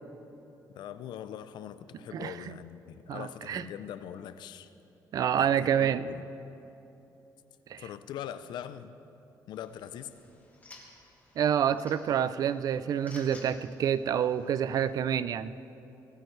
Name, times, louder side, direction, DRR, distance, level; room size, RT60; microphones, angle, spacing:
voice 1, 0.7-4.7 5.4-6.3 7.8-8.9 9.5-10.1, left 10 dB, 80° left, 12 dB, 0.6 m, -42 dB
voice 2, 2.1-2.5 3.1-3.6 5.1-6.1 7.7-7.8 11.4-15.6, right 9 dB, 55° right, 15 dB, 0.4 m, -28 dB
sound 1, 9.5-14.9, left 2 dB, 20° left, 2.4 m, -55 dB
20.0 x 15.0 x 3.3 m, 2.9 s
cardioid pair, 145°, 7 cm